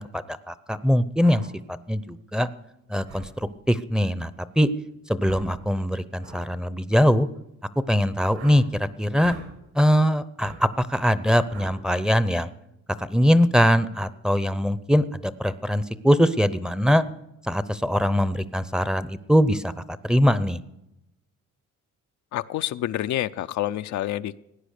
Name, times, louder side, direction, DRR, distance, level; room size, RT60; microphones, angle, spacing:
voice 1, 0.0-1.4 1.9-2.5 2.9-3.3 3.7-4.3 4.6-4.7 5.1-7.3 7.9-9.3 9.8-12.5 13.0-17.0 17.5-19.7 20.0-20.6, equal, ahead, 14 dB, 0.7 m, -22 dB
sound 1, 1.2-1.4 3.1-3.3 5.2-5.5 6.2-6.4 8.3-8.6 9.1-9.5 10.4-10.6 11.5-11.8, right 3 dB, 80° right, 6.6 m, -41 dB
voice 2, 22.3-24.4, left 13 dB, 70° left, 11 dB, 0.5 m, -28 dB
17.0 x 9.8 x 6.6 m, 0.88 s
cardioid pair, 90°, 30 cm